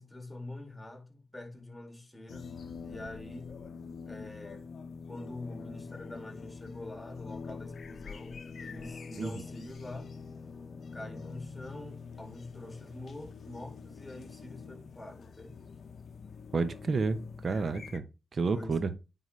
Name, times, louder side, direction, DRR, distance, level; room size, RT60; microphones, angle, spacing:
voice 1, 0.0-2.5 2.8-3.5 4.1-4.6 5.1-10.1 10.9-15.6 18.5-18.7, left 1 dB, 10° left, 2.3 m, -45 dB
sound 1, 2.3-18.0, left 5 dB, 60° left, 0.6 m, -45 dB
voice 2, 16.5-18.0 18.3-18.9, right 4 dB, 55° right, 0.8 m, -30 dB
9.1 x 4.0 x 3.2 m
cardioid pair, 65°, 0 cm